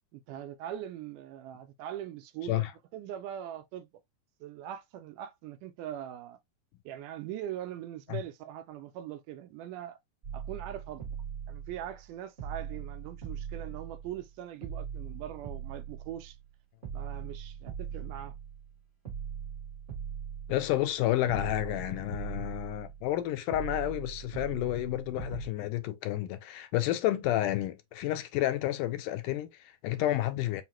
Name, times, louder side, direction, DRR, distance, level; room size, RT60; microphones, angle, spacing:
voice 1, 0.1-2.7 2.9-3.9 4.4-6.4 6.9-10.0 10.3-11.2 11.5-16.4 16.9-18.3 22.6-22.7, right 11 dB, 80° right, 2.1 m, -41 dB
sound 1, 10.2-12.1 12.4-14.3 14.6-16.5 16.8-18.8 19.1-21.0 21.3-23.2 23.5-25.5, right 8 dB, 35° right, 1.2 m, -40 dB
voice 2, 20.5-30.6, left 14 dB, 80° left, 2.0 m, -30 dB
5.7 x 2.1 x 2.9 m
omnidirectional pair, 3.8 m